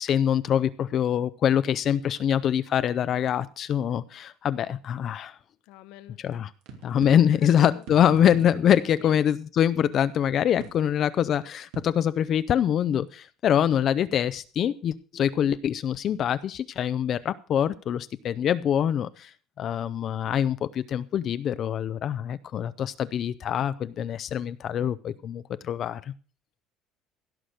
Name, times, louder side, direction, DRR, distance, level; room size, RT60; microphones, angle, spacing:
voice 1, 0.0-5.4 6.2-6.5 6.8-19.3 19.6-26.0, left 9 dB, 40° left, 14 dB, 0.5 m, -24 dB
voice 2, 5.7-6.2 7.2-7.8 9.0-9.2, left 14 dB, 80° left, 14 dB, 1.0 m, -44 dB
sound 1, 6.3-6.4 6.6-7.3 7.8-9.2 9.6-9.7 10.6-10.9 11.7-12.1, right 5 dB, 80° right, 3.4 m, -41 dB
16.5 x 6.0 x 6.5 m, 0.38 s
cardioid pair, 150°, 0 cm